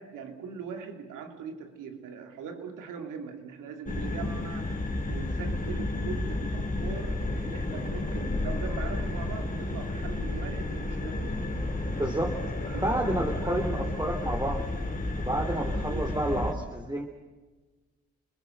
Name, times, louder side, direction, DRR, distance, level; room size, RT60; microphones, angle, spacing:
voice 1, 0.0-11.5 12.7-13.0 13.3-14.1 15.7-16.1, right 6 dB, 80° right, 6 dB, 2.8 m, -41 dB
sound 1, 3.9-16.5, left 2 dB, 25° left, 3.9 m, -31 dB
voice 2, 11.9-12.4 12.8-14.6 15.2-17.0, right 1 dB, 15° right, 1 dB, 3.2 m, -30 dB
28.5 x 21.0 x 6.6 m, 1.3 s
supercardioid pair, 55°, 31 cm